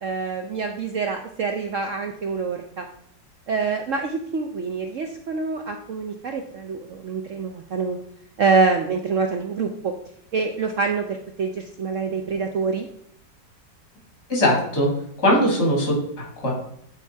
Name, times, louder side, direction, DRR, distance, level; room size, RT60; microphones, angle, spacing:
voice 1, 0.0-2.9 3.5-8.0 8.4-9.9 10.3-12.9, right 4 dB, 60° right, 4 dB, 0.8 m, -26 dB
voice 2, 14.3-14.9 15.2-16.5, equal, 65° left, -1 dB, 3.4 m, -20 dB
9.0 x 4.4 x 4.5 m, 0.69 s
omnidirectional pair, 1.9 m